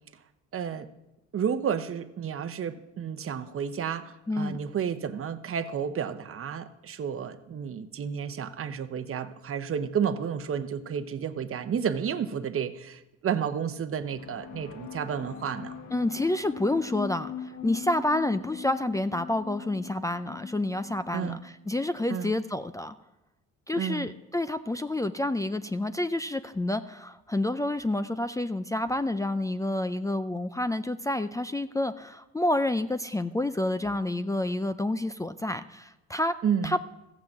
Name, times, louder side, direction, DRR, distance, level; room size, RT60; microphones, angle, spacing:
voice 1, 0.5-0.9 1.3-15.7 21.1-21.4 22.1-22.3 23.8-24.1 36.4-36.8, right 7 dB, 45° right, 10 dB, 0.9 m, -31 dB
voice 2, 4.3-4.6 15.9-22.9 23.7-36.3 36.6-36.8, left 1 dB, 10° left, 11 dB, 0.4 m, -29 dB
sound 1, 14.1-21.7, left 7 dB, 65° left, 1.3 m, -41 dB
14.5 x 6.0 x 7.8 m, 0.97 s
cardioid pair, 90°, 30 cm